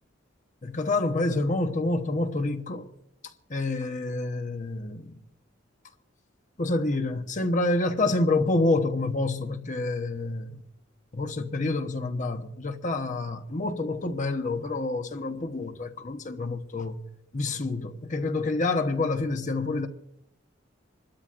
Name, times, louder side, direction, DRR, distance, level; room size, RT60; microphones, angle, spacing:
voice 1, 0.6-2.9 3.2-5.2 6.6-10.6 11.1-17.0 17.3-19.9, left 2 dB, 40° left, 1.0 m, -28 dB
27.0 x 12.5 x 2.5 m
head